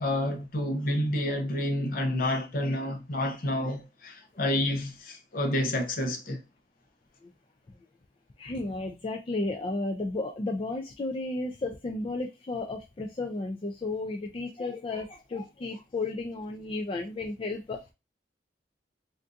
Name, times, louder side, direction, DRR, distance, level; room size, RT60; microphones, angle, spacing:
voice 1, 0.0-6.4, left 1 dB, 55° left, 0.7 m, -29 dB
voice 2, 8.4-17.8, left 2 dB, 30° left, 0.3 m, -33 dB
3.5 x 2.6 x 2.4 m
head